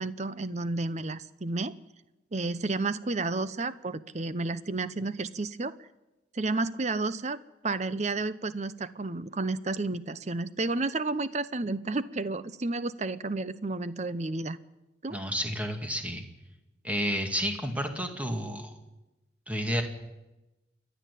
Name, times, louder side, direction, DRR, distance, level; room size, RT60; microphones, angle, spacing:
voice 1, 0.0-1.7 2.3-5.7 6.3-7.4 7.6-14.6 15.0-15.2, right 3 dB, 35° right, 15 dB, 0.8 m, -31 dB
voice 2, 15.1-16.2 16.8-18.7 19.5-19.8, equal, 5° right, 4 dB, 2.1 m, -31 dB
29.0 x 11.5 x 8.4 m, 1.0 s
head